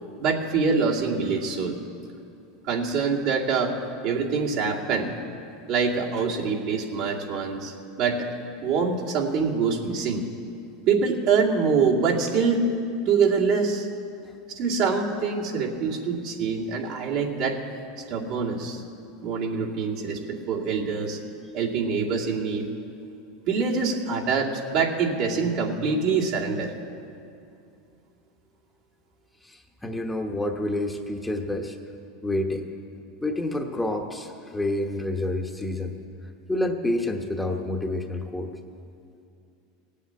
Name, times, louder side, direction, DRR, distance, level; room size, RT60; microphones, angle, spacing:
voice 1, 0.2-1.8 2.6-5.1 5.7-8.3 8.6-10.3 10.9-12.7 13.1-13.9 14.5-17.6 18.1-18.8 19.2-21.2 21.5-22.7 23.5-26.7, right 5 dB, 65° right, -3 dB, 2.4 m, -25 dB
voice 2, 29.4-31.8 32.2-32.6 33.2-35.9 36.5-38.5, left 1 dB, 5° left, 3 dB, 1.1 m, -28 dB
17.0 x 8.4 x 8.7 m, 2.5 s
supercardioid pair, 110°, 0 cm